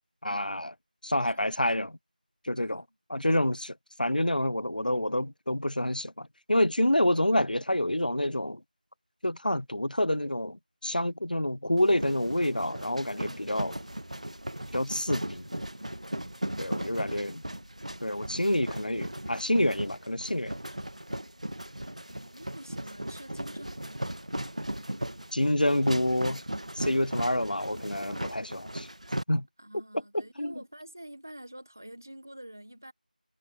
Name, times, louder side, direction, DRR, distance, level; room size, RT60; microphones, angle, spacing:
voice 1, 0.2-0.7 1.0-2.0 2.4-2.8 3.1-8.6 9.2-13.8 14.7-15.5 16.6-17.4 18.0-20.6 25.3-26.4 26.8-28.9 29.3-29.5 30.1-30.5, left 1 dB, 70° left, 0.9 m, -28 dB
voice 2, 2.6-2.9 16.6-17.0 22.1-24.1 29.6-32.9, right 1 dB, 20° right, 1.2 m, -47 dB
sound 1, 11.8-29.2, right 1 dB, 50° right, 1.9 m, -37 dB
figure-of-eight pair, 180°, 5 cm